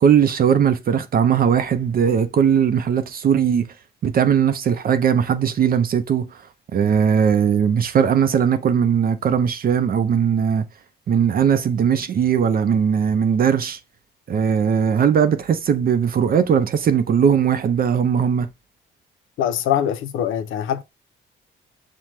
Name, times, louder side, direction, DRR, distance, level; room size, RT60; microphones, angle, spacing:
voice 1, 0.0-3.7 4.0-6.3 6.7-10.6 11.1-13.8 14.3-18.5, right 7 dB, 50° right, 0.5 m, -19 dB
voice 2, 19.4-20.8, left 10 dB, 85° left, 0.6 m, -23 dB
5.8 x 2.2 x 3.1 m
cardioid pair, 90°, 20 cm